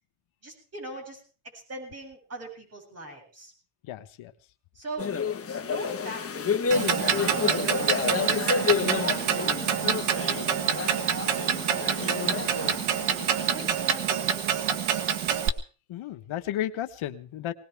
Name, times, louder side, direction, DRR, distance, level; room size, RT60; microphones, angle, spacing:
voice 1, 0.4-3.5 4.7-5.1 5.6-10.4 10.7-12.9 13.5-15.2, right 2 dB, 30° right, 1 dB, 7.9 m, -43 dB
voice 2, 3.8-4.3 15.9-17.5, left 12 dB, 80° left, 9 dB, 1.2 m, -33 dB
sound 1, 5.0-13.7, left 6 dB, 30° left, 1.3 m, -30 dB
Clock, 6.7-15.5, right 8 dB, 85° right, 1.7 m, -27 dB
20.5 x 19.5 x 3.5 m, 0.38 s
cardioid pair, 140°, 47 cm